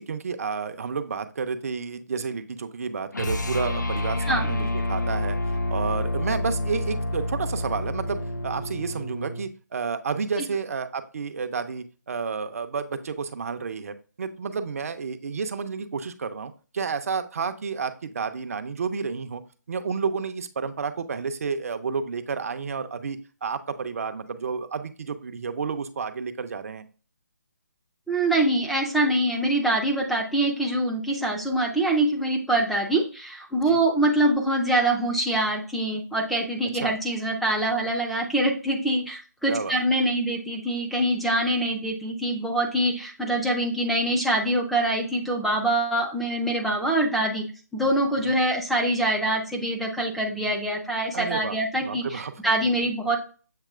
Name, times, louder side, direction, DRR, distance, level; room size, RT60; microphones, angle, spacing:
voice 1, 0.0-5.4 5.7-19.4 19.7-26.8 33.7-33.8 36.7-36.9 39.5-39.8 48.2-48.4 51.1-52.3, right 5 dB, 55° right, 9 dB, 0.6 m, -31 dB
sound 1, 3.1-9.5, left 1 dB, 85° left, 0.8 m, -28 dB
voice 2, 28.1-47.5 47.7-53.2, right 1 dB, ahead, 0 dB, 0.5 m, -24 dB
7.5 x 2.9 x 2.4 m, 0.37 s
figure-of-eight pair, 155°, 10 cm